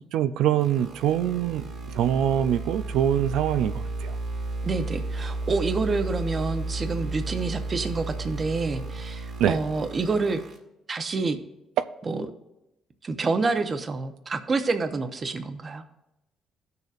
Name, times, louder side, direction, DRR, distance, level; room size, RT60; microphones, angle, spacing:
voice 1, 0.0-4.2 9.4-9.6 11.8-11.9, right 10 dB, 85° right, 12 dB, 0.4 m, -24 dB
sound 1, 0.6-10.6, right 2 dB, 60° right, 1.9 m, -33 dB
voice 2, 4.6-10.4 10.9-11.4 12.1-12.3 13.0-15.8, right 3 dB, 35° right, 8 dB, 0.8 m, -28 dB
17.0 x 6.7 x 2.5 m, 0.90 s
cardioid pair, 110°, 0 cm